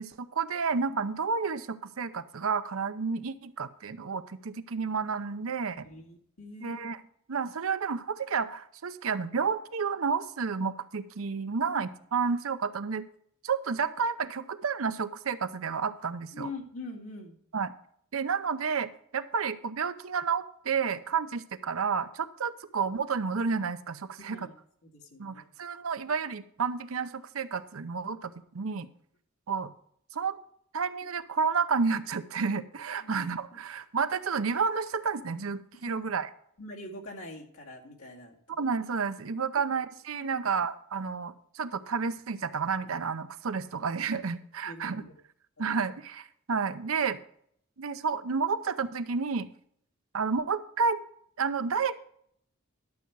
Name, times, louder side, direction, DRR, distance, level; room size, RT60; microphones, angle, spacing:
voice 1, 0.0-5.9 6.6-7.0 7.3-13.1 13.4-16.5 17.5-17.7 18.1-24.4 25.2-28.9 29.5-29.7 30.1-30.4 30.7-36.3 38.6-45.0 45.6-47.2 47.8-49.5 50.1-51.0 51.4-52.0, right 5 dB, 75° right, 12 dB, 0.7 m, -31 dB
voice 2, 5.8-6.8 11.7-11.8 16.3-17.4 24.3-24.5 24.8-25.4 26.0-26.1 33.0-33.6 35.8-35.9 36.6-38.4 40.3-40.5 44.6-45.2 45.6-45.7, left 2 dB, 80° left, -1 dB, 2.2 m, -44 dB
12.0 x 7.0 x 4.7 m, 0.66 s
head